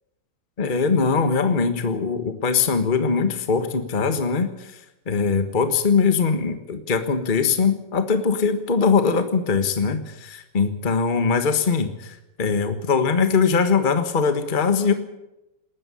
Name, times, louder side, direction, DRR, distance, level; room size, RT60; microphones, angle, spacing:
voice 1, 0.6-14.9, left 5 dB, 30° left, 9 dB, 1.5 m, -21 dB
19.0 x 14.0 x 10.0 m, 0.94 s
omnidirectional pair, 1.9 m